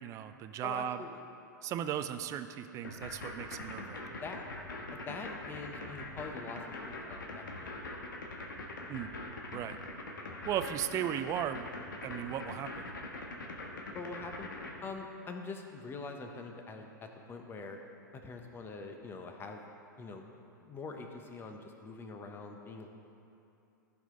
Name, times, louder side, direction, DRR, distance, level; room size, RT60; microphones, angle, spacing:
voice 1, 0.0-1.0 1.6-4.2 8.9-9.1 9.5-9.8 10.4-11.7 12.0-12.9, right 10 dB, 30° right, 10 dB, 0.5 m, -36 dB
voice 2, 0.6-1.2 4.2-4.4 4.9-7.7 13.9-14.5 14.8-17.8 18.1-19.6 20.0-20.2 20.6-22.9, left 4 dB, 20° left, 4 dB, 1.0 m, -44 dB
sound 1, 2.8-14.7, left 2 dB, 80° left, 1.3 m, -42 dB
14.5 x 5.8 x 3.9 m, 2.8 s
hypercardioid pair, 105°, 11 cm